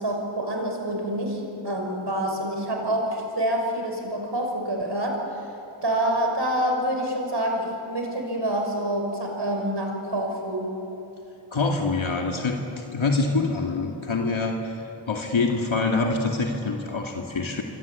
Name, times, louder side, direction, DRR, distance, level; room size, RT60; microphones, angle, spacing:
voice 1, 0.0-5.2 5.8-10.7, right 1 dB, 60° right, 2 dB, 6.2 m, -27 dB
voice 2, 11.5-17.6, left 3 dB, 75° left, 1 dB, 2.4 m, -25 dB
27.5 x 24.0 x 8.5 m, 2.8 s
wide cardioid pair, 75°, 48 cm